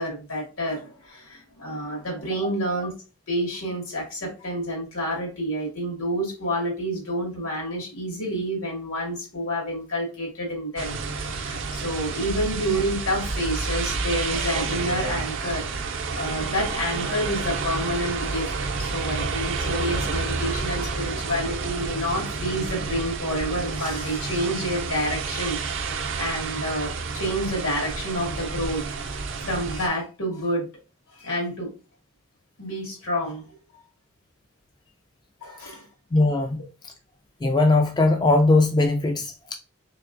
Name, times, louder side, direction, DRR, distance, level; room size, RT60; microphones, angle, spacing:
voice 1, 0.0-2.9 3.3-25.6 26.2-28.9 29.4-30.7 31.2-31.7 32.6-33.4 33.7-33.8 35.4-35.9, equal, 80° left, 1.9 m, -29 dB
sound 1, 10.8-29.9, right 4 dB, 60° right, 0.5 m, -30 dB
voice 2, 36.1-36.9 37.4-39.5, left 2 dB, 20° left, 0.3 m, -20 dB
3.6 x 3.4 x 2.4 m
head